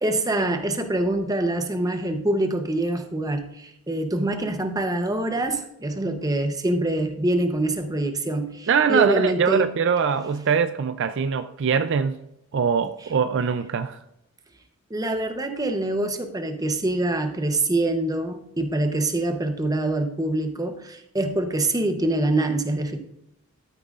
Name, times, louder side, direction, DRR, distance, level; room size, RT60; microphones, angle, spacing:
voice 1, 0.0-9.7 14.9-23.0, right 2 dB, 15° right, 0.8 m, -25 dB
voice 2, 8.7-12.2 12.5-14.0, right 6 dB, 55° right, 0.4 m, -22 dB
12.5 x 9.1 x 2.4 m
head